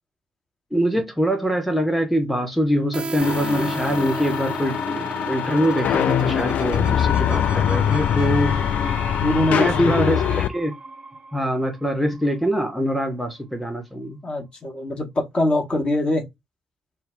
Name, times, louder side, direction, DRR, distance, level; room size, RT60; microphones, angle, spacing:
voice 1, 0.7-8.6 9.5-10.7 11.3-14.2, equal, ahead, 0.7 m, -24 dB
sound 1, 2.9-12.5, right 3 dB, 30° right, 0.4 m, -34 dB
sound 2, 3.2-10.5, left 9 dB, 50° left, 0.3 m, -23 dB
voice 2, 9.2-10.2 14.2-16.2, left 1 dB, 30° left, 0.9 m, -23 dB
2.2 x 2.1 x 3.5 m
figure-of-eight pair, 45°, 3 cm